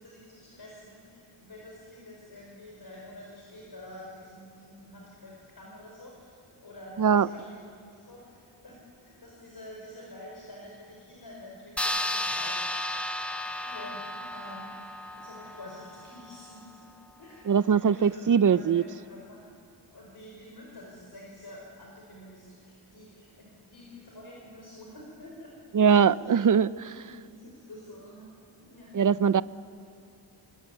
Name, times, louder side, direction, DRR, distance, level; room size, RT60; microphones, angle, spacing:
voice 1, 0.0-7.6 7.9-8.8 9.0-13.1 13.6-14.8 15.1-16.9 17.2-19.5 19.9-25.5 25.9-26.4 26.8-28.4 28.7-29.0, left 1 dB, 55° left, -3 dB, 5.2 m, -48 dB
sound 1, 11.8-16.6, left 1 dB, 5° left, 1.2 m, -34 dB
voice 2, 17.5-18.8 25.7-26.9 28.9-29.4, right 7 dB, 45° right, 17 dB, 0.6 m, -21 dB
26.0 x 22.5 x 9.1 m, 2.4 s
wide cardioid pair, 125°, 44 cm